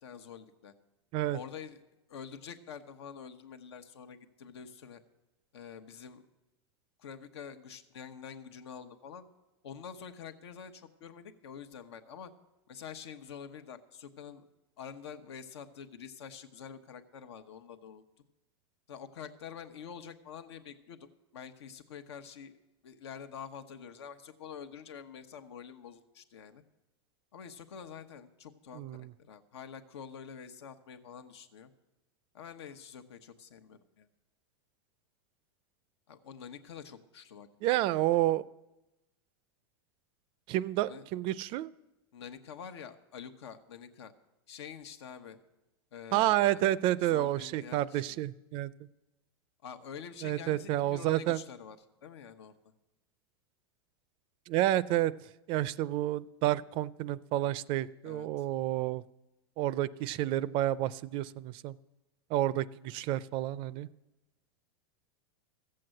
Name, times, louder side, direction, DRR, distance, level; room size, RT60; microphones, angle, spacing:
voice 1, 0.0-0.7 1.3-1.8 2.1-5.0 5.5-6.3 7.0-9.3 9.6-12.3 12.7-14.4 14.8-18.2 18.9-22.5 22.8-26.6 27.3-31.7 32.3-34.1 36.1-37.5 38.1-38.2 40.8-41.0 42.1-44.1 44.5-45.4 45.9-48.2 49.6-51.8 52.0-52.5 54.9-55.0 58.0-58.5, left 7 dB, 90° left, 8 dB, 1.1 m, -47 dB
voice 2, 28.8-29.1 37.6-38.4 40.5-41.7 46.1-48.7 50.2-51.4 54.5-55.1 55.5-59.0 59.6-61.8 62.3-63.9, right 14 dB, 40° right, 19 dB, 0.4 m, -30 dB
14.0 x 7.7 x 7.7 m, 1.0 s
supercardioid pair, 140°, 14 cm